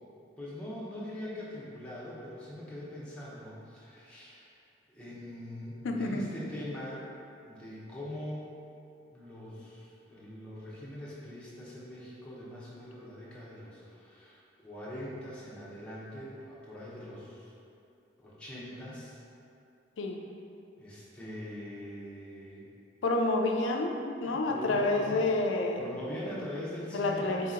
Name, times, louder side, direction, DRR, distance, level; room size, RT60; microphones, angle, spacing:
voice 1, 0.4-4.5 4.9-7.0 7.4-8.5 9.1-17.5 18.2-19.2 20.8-22.7 24.2-25.2 25.8-27.5, left 1 dB, 5° left, -9 dB, 0.7 m, -42 dB
voice 2, 5.8-6.3 20.0-20.2 23.0-25.9 26.9-27.5, left 2 dB, 85° left, 3 dB, 0.4 m, -29 dB
4.0 x 2.8 x 3.7 m, 2.7 s
head